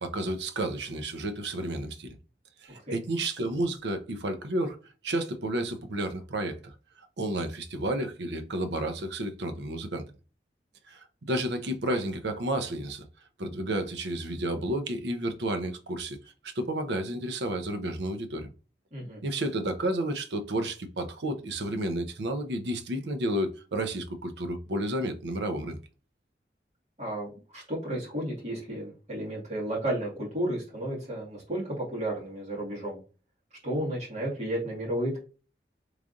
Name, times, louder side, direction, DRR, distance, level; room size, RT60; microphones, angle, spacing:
voice 1, 0.0-2.2 2.6-4.8 5.0-6.7 7.0-10.0 10.9-13.0 13.4-16.2 16.4-18.5 19.2-25.8, right 1 dB, 85° right, 0.7 m, -31 dB
voice 2, 18.9-19.2 27.0-33.0 33.6-35.2, right 1 dB, 40° right, 2.1 m, -33 dB
3.5 x 3.2 x 2.5 m
head